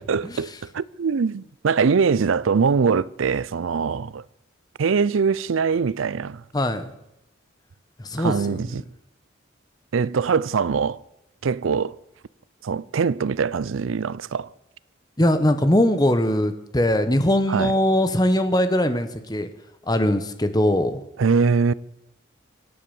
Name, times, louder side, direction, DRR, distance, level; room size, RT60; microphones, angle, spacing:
voice 1, 0.0-4.2 4.8-6.4 8.2-8.8 9.9-11.0 11.4-12.0 12.6-14.5 17.5-17.7 21.2-21.7, right 5 dB, 85° right, 0.5 m, -22 dB
voice 2, 6.5-6.9 8.0-8.6 15.2-19.5 19.9-21.0, left 1 dB, 20° left, 1.1 m, -21 dB
24.0 x 8.5 x 7.1 m
head